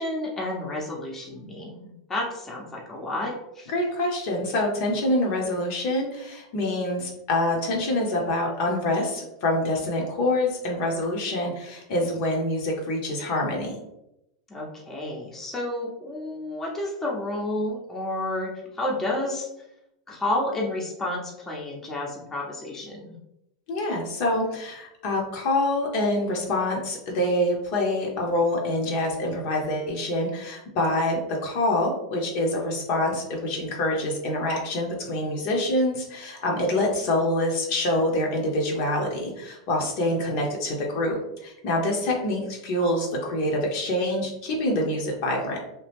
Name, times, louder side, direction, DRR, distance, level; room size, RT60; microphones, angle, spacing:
voice 1, 0.0-3.7 14.5-19.5 20.1-23.1, left 1 dB, 15° left, -3 dB, 0.8 m, -31 dB
voice 2, 3.7-13.8 23.7-45.6, left 1 dB, 60° left, -1 dB, 0.9 m, -26 dB
2.9 x 2.3 x 3.4 m, 0.84 s
hypercardioid pair, 115°, 2 cm